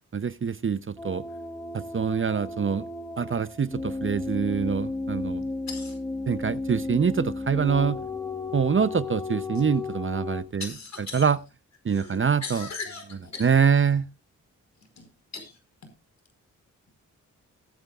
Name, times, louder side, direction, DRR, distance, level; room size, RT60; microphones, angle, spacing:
voice 1, 0.1-1.2 1.7-2.9 3.2-5.4 6.3-8.0 8.5-10.7 11.1-11.4 11.8-12.7 13.4-14.0, right 6 dB, 40° right, 0.7 m, -25 dB
sound 1, 1.0-10.4, left 3 dB, 10° left, 1.2 m, -34 dB
voice 2, 5.7-6.0 10.6-11.3 11.9-13.5 15.0-15.1 15.3-15.6, left 4 dB, 60° left, 4.7 m, -38 dB
19.0 x 8.8 x 2.4 m
cardioid pair, 50°, 32 cm